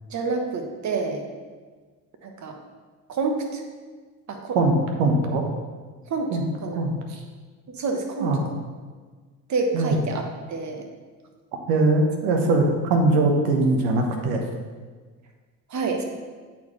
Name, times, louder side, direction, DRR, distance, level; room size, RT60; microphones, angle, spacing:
voice 1, 0.1-1.2 2.2-2.6 3.1-3.6 4.3-4.6 6.1-6.8 7.7-8.6 9.5-10.9 15.7-16.0, right 4 dB, 40° right, 3 dB, 1.1 m, -28 dB
voice 2, 4.5-5.4 6.3-6.4 6.7-6.9 8.2-8.4 9.7-10.0 11.7-14.4, right 2 dB, 70° right, 3 dB, 1.2 m, -21 dB
8.2 x 4.2 x 3.2 m, 1.4 s
hypercardioid pair, 70°, 45 cm